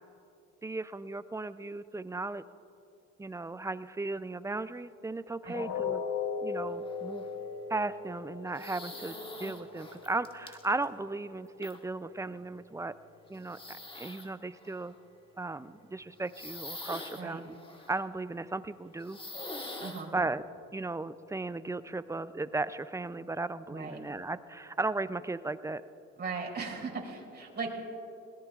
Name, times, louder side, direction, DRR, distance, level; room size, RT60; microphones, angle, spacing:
voice 1, 0.6-2.4 3.2-6.0 6.4-7.2 7.7-12.9 13.3-14.9 15.4-17.6 17.9-19.2 20.1-20.4 20.7-25.8, right 3 dB, 10° right, 14 dB, 0.4 m, -36 dB
sound 1, 5.5-11.5 11.9-12.1 12.6-12.7, left 6 dB, 65° left, 1.0 m, -39 dB
sound 2, 6.8-7.3 8.5-10.8 11.6-11.8 12.2-12.3 13.3-14.3 14.5-14.9 15.5-15.6 16.3-18.0 19.0-20.1, left 2 dB, 15° left, 1.5 m, -44 dB
voice 2, 19.8-20.1 23.7-24.0 26.2-27.7, right 4 dB, 35° right, -2 dB, 3.3 m, -38 dB
20.5 x 18.0 x 2.4 m, 2.7 s
cardioid pair, 90°, 30 cm